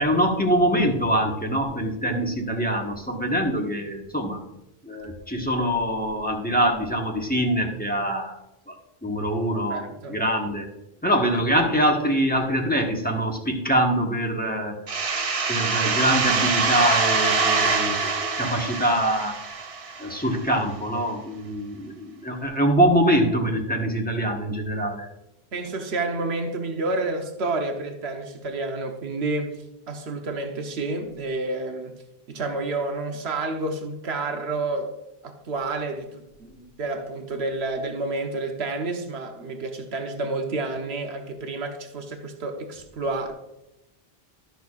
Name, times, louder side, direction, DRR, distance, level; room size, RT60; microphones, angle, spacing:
voice 1, 0.0-4.4 4.8-8.4 8.7-8.8 9.0-9.8 10.1-10.7 11.0-14.7 15.5-19.4 20.0-25.1, right 1 dB, 10° left, 1.2 m, -24 dB
voice 2, 9.7-10.2 25.5-29.5 29.9-31.9 32.3-34.9 35.2-43.3, right 2 dB, 85° right, 1.2 m, -29 dB
sound 1, 14.9-20.4, right 4 dB, 40° right, 0.6 m, -24 dB
13.0 x 6.4 x 2.4 m
omnidirectional pair, 1.1 m